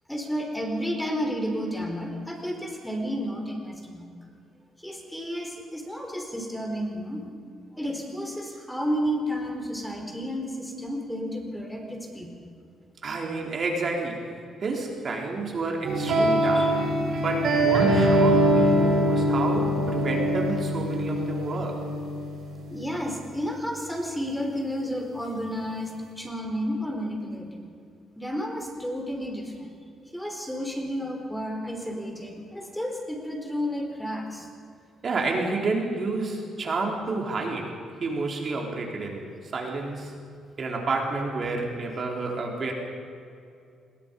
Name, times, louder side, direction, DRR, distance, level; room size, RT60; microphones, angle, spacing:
voice 1, 0.1-4.1 4.8-7.2 7.7-12.3 16.5-16.7 22.7-27.5 28.2-29.7 30.1-34.5, equal, 5° left, 2 dB, 4.3 m, -31 dB
voice 2, 13.0-16.8 17.1-21.8 35.0-40.1 40.6-42.7, right 3 dB, 45° right, 1 dB, 3.8 m, -30 dB
sound 1, 15.8-22.9, right 1 dB, 65° right, 7.6 m, -23 dB
25.5 x 21.5 x 5.4 m, 2.4 s
cardioid pair, 90°, 0 cm